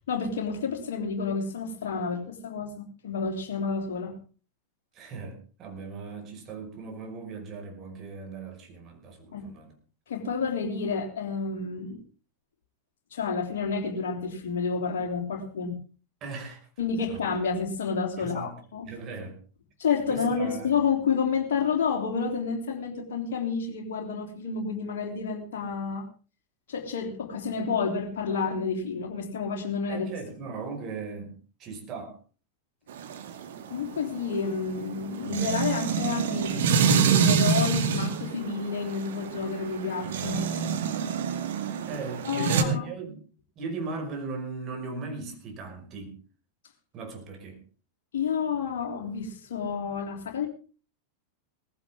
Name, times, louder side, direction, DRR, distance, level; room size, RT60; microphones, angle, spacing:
voice 1, 0.1-4.1 9.3-9.5 10.1-12.0 13.1-15.8 16.8-18.9 19.8-26.1 26.7-30.1 33.7-40.4 42.2-42.9 48.1-50.5, left 5 dB, 55° left, 1 dB, 3.4 m, -30 dB
voice 2, 4.9-9.7 16.2-16.6 17.1-17.2 18.2-18.6 18.9-19.4 20.1-20.7 29.9-32.2 41.9-43.2 43.6-46.2 46.9-47.6, right 4 dB, 30° right, 3 dB, 5.6 m, -38 dB
sound 1, 32.9-42.6, right 6 dB, 60° right, 2.1 m, -27 dB
18.5 x 15.5 x 3.7 m, 0.37 s
figure-of-eight pair, 90°, 0 cm